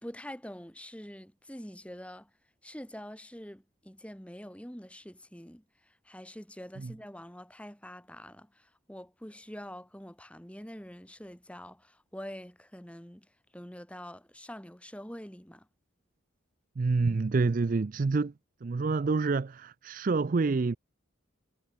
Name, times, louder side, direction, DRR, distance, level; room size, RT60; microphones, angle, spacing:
voice 1, 0.0-2.3 2.6-13.3 13.5-15.7, equal, 5° left, 2.8 m, -45 dB
voice 2, 16.8-18.3 18.6-20.8, right 4 dB, 40° right, 0.4 m, -27 dB
head